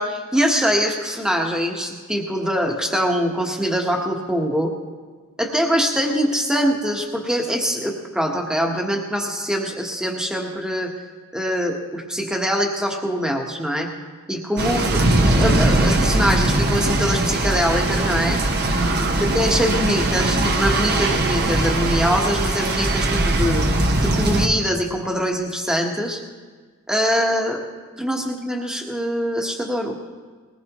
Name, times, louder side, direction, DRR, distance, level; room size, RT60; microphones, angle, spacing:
voice 1, 0.0-4.7 5.4-10.9 11.3-13.9 14.3-15.0 15.3-18.4 19.3-23.7 24.0-26.2 26.9-27.6 28.0-30.0, equal, 5° right, 1 dB, 1.4 m, -23 dB
sound 1, 14.6-24.5, right 2 dB, 50° right, 1.1 m, -20 dB
21.0 x 19.5 x 3.1 m, 1.5 s
head